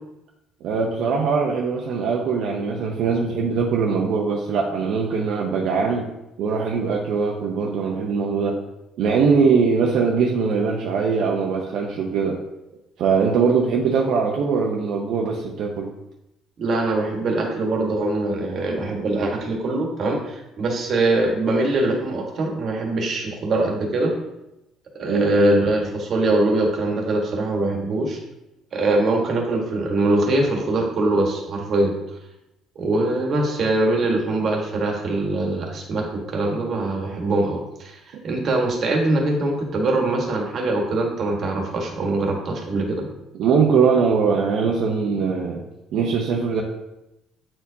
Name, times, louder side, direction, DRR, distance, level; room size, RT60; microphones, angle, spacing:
voice 1, 0.6-6.1 6.4-8.6 9.0-12.4 13.0-15.9 25.0-25.6 38.1-38.2 43.3-45.6 45.9-46.6, right 5 dB, 65° right, -1 dB, 0.7 m, -21 dB
voice 2, 16.6-24.1 24.9-28.2 28.7-31.9 32.7-43.0, right 2 dB, 40° right, 0 dB, 1.3 m, -22 dB
8.7 x 4.4 x 2.7 m, 0.91 s
cardioid pair, 150°, 0 cm